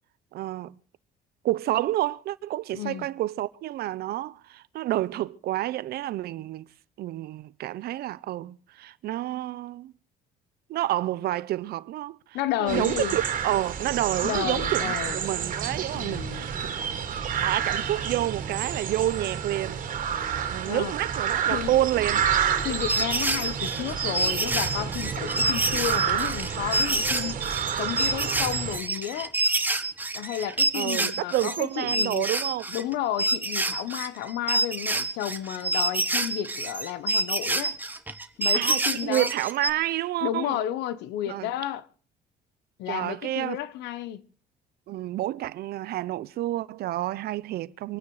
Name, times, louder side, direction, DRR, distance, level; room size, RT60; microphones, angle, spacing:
voice 1, 0.3-0.7 1.4-6.7 7.0-9.9 10.7-12.2 12.6-19.8 20.5-22.3 30.7-32.6 38.5-40.6 41.3-41.5 42.9-43.6 44.9-48.0, right 14 dB, 70° right, 0.8 m, -29 dB
voice 2, 2.7-3.1 12.3-13.2 14.2-15.2 15.9-16.5 20.7-20.9 21.5-21.8 22.6-27.5 27.8-29.3 30.1-32.3 32.7-37.8 38.4-39.3 40.2-41.9 42.8-44.2, left 12 dB, 90° left, 1.2 m, -32 dB
sound 1, 12.7-28.8, right 8 dB, 50° right, 3.2 m, -29 dB
sound 2, 22.6-32.9 33.2-39.7, right 2 dB, 10° right, 1.4 m, -27 dB
25.5 x 9.6 x 4.9 m
cardioid pair, 110°, 17 cm